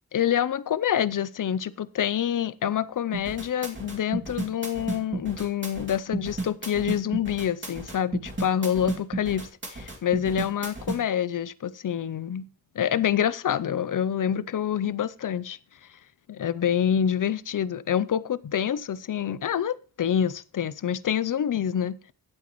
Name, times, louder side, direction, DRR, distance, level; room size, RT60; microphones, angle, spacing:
voice 1, 0.1-12.5 12.8-15.6 16.3-22.1, left 9 dB, 55° left, 0.5 m, -27 dB
sound 1, 3.1-11.0, right 2 dB, 30° right, 2.4 m, -33 dB
15.5 x 8.1 x 3.1 m
wide cardioid pair, 85°, 37 cm